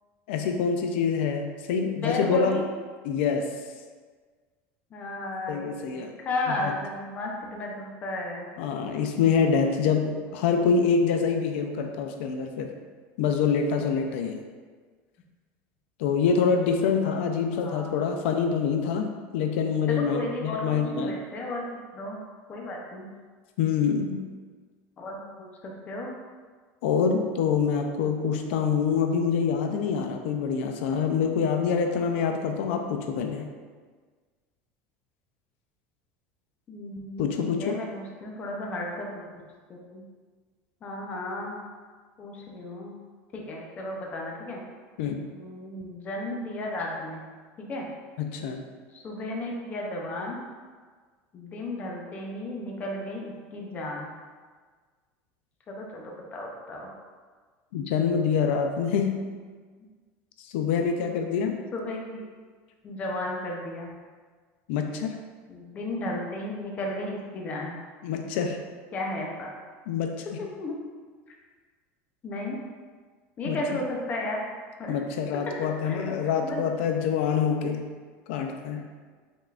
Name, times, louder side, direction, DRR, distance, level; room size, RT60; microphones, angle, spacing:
voice 1, 0.3-2.6 3.0-3.4 5.5-6.1 6.5-6.7 8.6-12.7 13.2-14.4 16.0-21.1 23.6-24.3 26.8-33.5 37.2-37.8 45.0-45.3 48.2-48.6 57.7-59.2 60.4-61.6 64.7-65.2 68.0-68.6 69.9-70.3 73.4-73.6 74.9-77.9 78.3-78.9, left 6 dB, 85° left, 4 dB, 0.4 m, -26 dB
voice 2, 2.0-2.7 4.9-8.5 17.5-18.1 19.9-21.7 21.9-22.2 22.5-23.1 25.0-26.1 36.7-39.3 39.7-40.0 40.8-41.6 42.2-42.9 43.3-44.6 45.3-47.2 47.6-47.9 48.9-50.4 51.3-54.1 55.7-56.9 59.2-59.3 61.7-62.2 62.8-63.9 65.5-67.8 68.9-69.5 70.4-70.7 72.2-72.6 73.4-74.4 74.8-74.9 75.8-76.0 76.4-76.6, left 1 dB, 25° left, -1 dB, 0.6 m, -34 dB
5.4 x 3.6 x 2.4 m, 1.5 s
cardioid pair, 170°, 6 cm